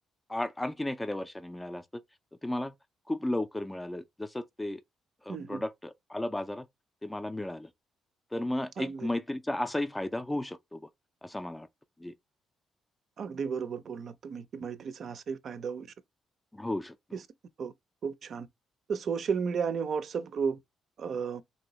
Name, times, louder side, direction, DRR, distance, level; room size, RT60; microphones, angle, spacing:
voice 1, 0.3-2.0 2.4-2.7 3.1-4.8 5.2-6.7 7.0-7.7 8.3-10.8 11.2-11.7 12.0-12.1 16.5-17.2, left 1 dB, 10° left, 0.4 m, -34 dB
voice 2, 5.3-5.6 8.8-9.1 13.2-15.9 17.1-17.2 17.6-17.7 18.0-18.5 18.9-20.6 21.0-21.4, right 6 dB, 55° right, 0.5 m, -33 dB
3.4 x 2.7 x 2.9 m
cardioid pair, 90°, 0 cm